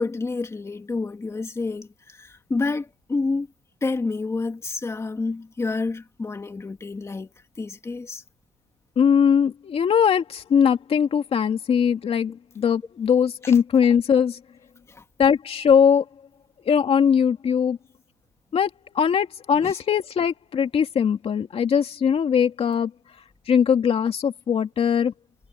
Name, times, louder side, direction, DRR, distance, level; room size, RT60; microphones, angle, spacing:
voice 1, 0.0-3.5 3.8-7.3 7.6-8.2 13.4-13.6 14.9-15.0 19.6-19.8, left 3 dB, 20° left, 2.4 m, -29 dB
voice 2, 9.0-14.4 15.2-16.0 16.7-17.8 18.5-18.7 18.9-22.9 23.5-25.1, left 7 dB, 40° left, 2.6 m, -20 dB
cardioid pair, 130°, 15 cm